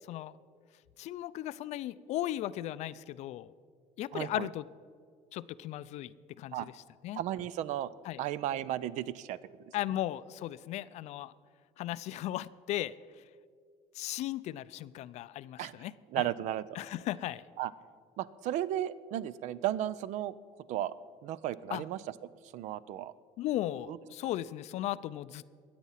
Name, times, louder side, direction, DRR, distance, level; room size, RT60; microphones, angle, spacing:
voice 1, 1.0-3.5 4.0-4.7 5.3-6.7 7.0-7.2 8.0-8.2 9.7-11.3 11.8-12.9 13.9-16.3 16.7-17.4 21.7-21.8 23.4-25.6, left 14 dB, 60° left, 17 dB, 0.4 m, -36 dB
voice 2, 4.1-4.5 6.5-6.7 7.1-7.9 8.2-9.7 15.6-15.8 16.1-16.8 17.6-17.7 18.2-20.3 20.7-20.9 21.2-22.0 22.5-23.1 23.9-24.0, right 12 dB, 65° right, 18 dB, 0.5 m, -34 dB
21.5 x 8.4 x 5.7 m, 2.1 s
cardioid pair, 145°, 13 cm